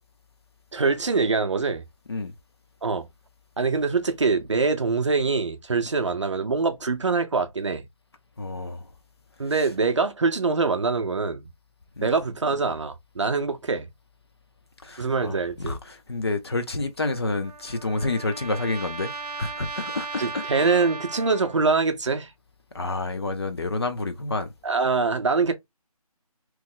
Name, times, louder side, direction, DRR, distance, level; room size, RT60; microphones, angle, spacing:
voice 1, 0.7-1.8 2.8-3.1 3.6-7.9 9.4-11.5 12.0-13.9 15.0-15.8 20.2-22.3 24.6-25.5, right 4 dB, 50° right, 0.5 m, -24 dB
voice 2, 8.4-8.9 9.5-9.7 12.0-12.1 14.8-19.1 19.4-20.4 22.7-24.5, left 2 dB, 40° left, 0.6 m, -29 dB
Trumpet, 17.0-21.8, right 4 dB, 90° right, 0.6 m, -37 dB
3.0 x 2.0 x 3.6 m
figure-of-eight pair, 165°, 20 cm